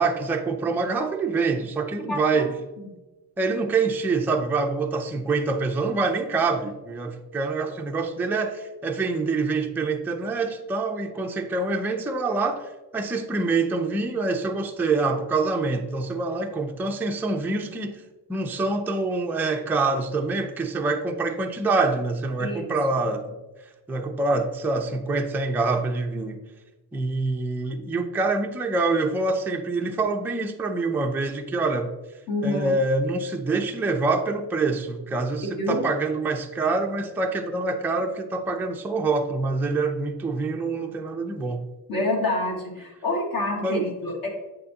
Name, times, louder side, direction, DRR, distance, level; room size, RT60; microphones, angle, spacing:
voice 1, 0.0-2.5 3.4-18.0 18.3-23.4 23.9-26.4 26.9-31.9 32.4-41.7 43.6-43.9, right 3 dB, 5° right, 0.3 m, -26 dB
voice 2, 2.1-2.5 22.4-22.8 32.3-32.8 35.6-35.8 41.9-44.3, left 2 dB, 50° left, 2.0 m, -27 dB
8.5 x 6.6 x 2.8 m
cardioid pair, 140°, 45 cm